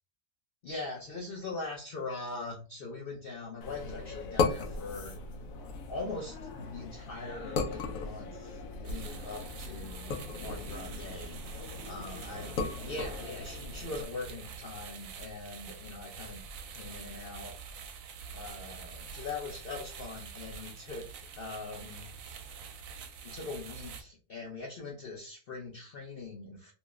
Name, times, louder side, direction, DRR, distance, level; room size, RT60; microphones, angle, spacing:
voice 1, 0.6-5.1 5.9-12.5 12.8-16.4 16.7-17.5 18.3-22.1 23.2-26.7, left 3 dB, 50° left, -1 dB, 0.7 m, -42 dB
sound 1, 3.6-14.1, left 4 dB, 85° left, 1.0 m, -37 dB
sound 2, 8.8-24.0, right 5 dB, 80° right, 1.0 m, -46 dB
3.0 x 2.1 x 3.5 m, 0.35 s
omnidirectional pair, 1.4 m